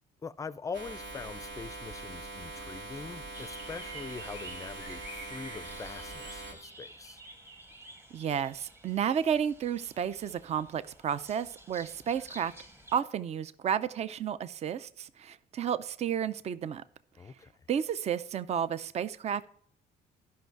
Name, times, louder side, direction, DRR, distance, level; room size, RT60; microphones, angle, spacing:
voice 1, 0.2-7.2 17.2-17.5, left 5 dB, 20° left, 0.4 m, -43 dB
sound 1, 0.7-6.5, right 2 dB, 80° right, 2.6 m, -43 dB
sound 2, 3.3-13.0, right 2 dB, 15° right, 1.1 m, -49 dB
voice 2, 8.1-12.5 12.9-16.8 17.7-19.5, right 8 dB, 40° right, 0.5 m, -32 dB
12.0 x 5.6 x 4.6 m
cardioid pair, 110°, 17 cm